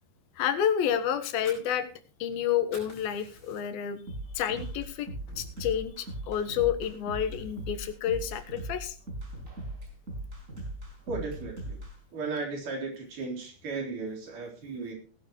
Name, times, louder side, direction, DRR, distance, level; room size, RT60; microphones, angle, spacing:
voice 1, 0.4-1.9 2.2-4.0 4.4-5.1 5.4-9.0, left 9 dB, 90° left, 10 dB, 3.1 m, -29 dB
Fire, 1.4-2.3 2.6-3.9 4.4-4.5 4.9-5.9, left 2 dB, 55° left, 7.3 m, -50 dB
sound 1, 4.1-11.9, right 1 dB, 20° right, 5.0 m, -39 dB
voice 2, 11.1-11.8 12.1-14.9, right 4 dB, 60° right, 1 dB, 5.1 m, -35 dB
18.0 x 11.5 x 3.1 m, 0.37 s
omnidirectional pair, 4.2 m